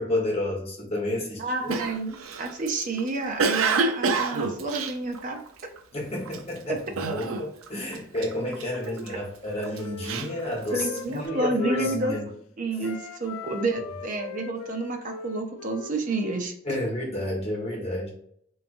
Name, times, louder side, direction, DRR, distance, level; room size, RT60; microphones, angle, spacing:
voice 1, 0.0-1.8 5.9-12.3 16.6-18.1, left 1 dB, 30° left, -3 dB, 1.3 m, -30 dB
voice 2, 1.4-5.4 6.7-6.8 8.9-9.0 10.7-12.1 12.6-16.5, right 2 dB, 40° right, 4 dB, 0.6 m, -29 dB
Cough, 1.7-5.8 6.3-6.6 7.0-7.7 7.9-9.1 9.6-11.1, right 4 dB, 85° right, 0.5 m, -28 dB
Wind instrument woodwind instrument, 8.9-12.3 12.8-16.4, left 6 dB, 85° left, 0.4 m, -41 dB
3.4 x 3.1 x 2.6 m, 0.67 s
head